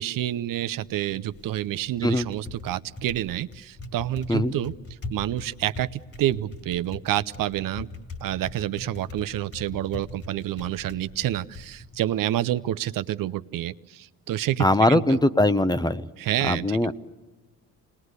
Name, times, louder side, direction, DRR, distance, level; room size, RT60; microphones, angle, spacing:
voice 1, 0.0-4.7 5.1-7.9 8.2-15.2 16.2-16.9, right 13 dB, 70° right, 14 dB, 0.7 m, -28 dB
Typing, 0.7-13.1, left 2 dB, 40° left, 2.6 m, -42 dB
voice 2, 14.6-16.0 16.4-16.9, left 1 dB, 10° left, 13 dB, 0.8 m, -21 dB
27.0 x 20.5 x 8.1 m, 1.3 s
cardioid pair, 80°, 35 cm